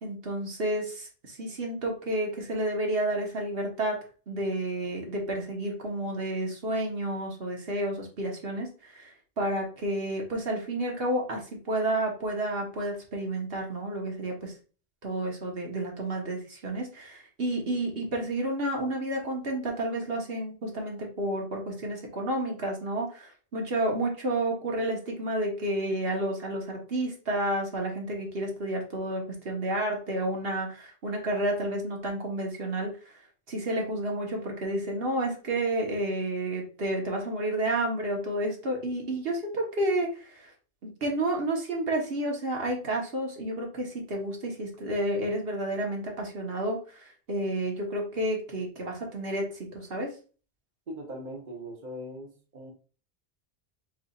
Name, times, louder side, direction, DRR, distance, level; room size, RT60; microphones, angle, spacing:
voice 1, 0.0-4.0 4.3-14.5 15.0-33.2 33.5-40.5 40.8-50.1, right 1 dB, 70° right, 0 dB, 1.4 m, -30 dB
voice 2, 50.9-52.7, equal, 50° right, 0 dB, 1.1 m, -40 dB
4.8 x 4.1 x 2.4 m, 0.37 s
omnidirectional pair, 1.0 m